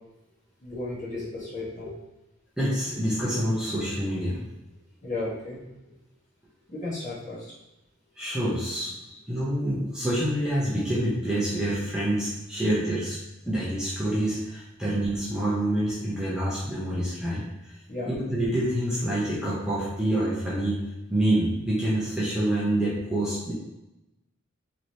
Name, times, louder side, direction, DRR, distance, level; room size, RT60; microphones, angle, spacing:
voice 1, 0.6-1.9 5.0-5.6 6.7-7.4 17.9-18.1, left 2 dB, 40° left, -7 dB, 1.1 m, -34 dB
voice 2, 2.6-4.5 8.2-8.9 9.3-13.2 13.4-17.4 18.0-20.8 21.1-23.5, right 1 dB, 5° right, -8 dB, 0.6 m, -27 dB
3.1 x 2.9 x 2.6 m, 0.94 s
head